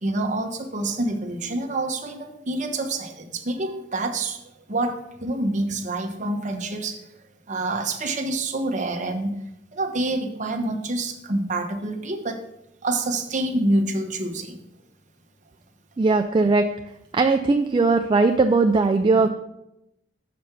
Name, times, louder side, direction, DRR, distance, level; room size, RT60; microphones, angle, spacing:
voice 1, 0.0-4.4 4.7-7.1 7.5-9.3 9.7-12.4 12.8-14.6 19.1-19.3, right 2 dB, 40° right, 3 dB, 1.0 m, -27 dB
voice 2, 16.0-16.6 17.1-19.3, right 3 dB, 25° right, 5 dB, 0.3 m, -19 dB
6.7 x 5.1 x 6.0 m, 0.86 s
head